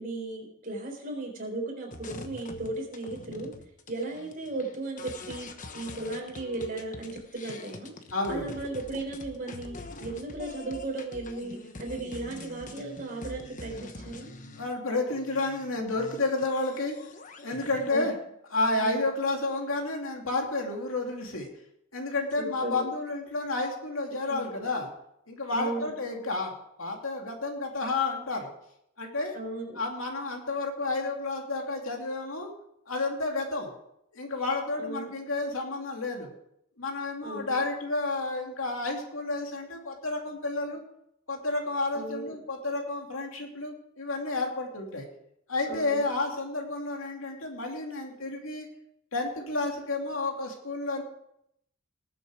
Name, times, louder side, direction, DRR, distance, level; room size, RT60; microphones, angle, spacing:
voice 1, 0.0-3.5 3.9-5.5 5.7-7.9 8.3-14.3 17.9-18.1 18.8-19.1 22.4-22.8 24.3-24.5 25.5-25.9 29.3-29.8 34.8-35.1 37.2-37.5 41.9-42.3 45.7-46.0, right 2 dB, 45° right, 0 dB, 4.2 m, -36 dB
sound 1, 1.9-14.7 15.1-17.9, left 2 dB, 40° left, 1.2 m, -44 dB
voice 2, 8.1-8.5 14.6-17.0 17.4-18.1 18.5-21.5 21.9-24.9 25.3-26.5 26.8-28.5 29.0-29.3 29.8-32.5 32.9-33.7 34.1-36.3 36.8-40.8 41.3-45.1 45.5-48.7 49.1-51.0, left 2 dB, 85° left, 2 dB, 2.7 m, -31 dB
19.5 x 7.8 x 4.8 m, 0.76 s
head